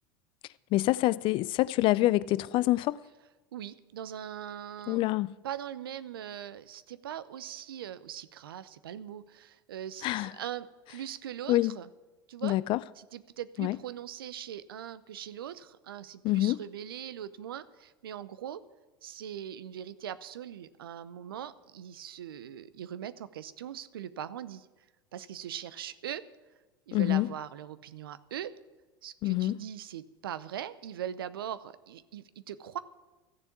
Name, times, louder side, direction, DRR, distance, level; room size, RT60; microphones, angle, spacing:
voice 1, 0.7-3.0 4.9-5.3 10.0-10.3 11.5-11.8 12.4-12.8 13.6-13.8 16.2-16.6 26.9-27.3 29.2-29.6, left 17 dB, 45° left, 0.4 m, -26 dB
voice 2, 3.5-5.1 5.4-11.9 12.3-12.6 13.0-18.6 19.0-24.7 25.1-26.2 26.9-28.5 29.0-32.8, right 10 dB, 80° right, 0.7 m, -41 dB
14.0 x 7.1 x 8.5 m
hypercardioid pair, 85°, 12 cm